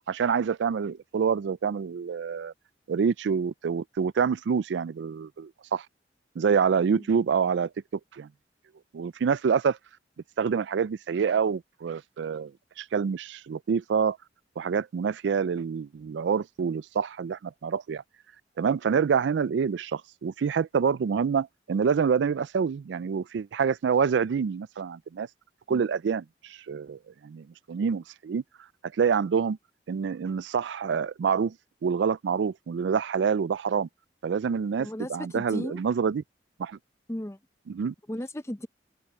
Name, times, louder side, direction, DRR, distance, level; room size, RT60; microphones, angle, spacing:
voice 1, 0.1-2.5 2.9-5.9 6.4-7.7 8.1-8.3 8.9-9.8 10.4-12.5 12.8-14.2 14.6-18.0 18.6-25.3 25.7-28.4 29.0-29.6 29.9-31.6 31.8-33.9 34.2-36.2 36.6-36.8 37.7-37.9, right 6 dB, 75° right, 0.4 m, -27 dB
voice 2, 34.8-35.8 37.1-37.4 38.1-38.7, left 1 dB, 15° left, 0.8 m, -35 dB
open air
head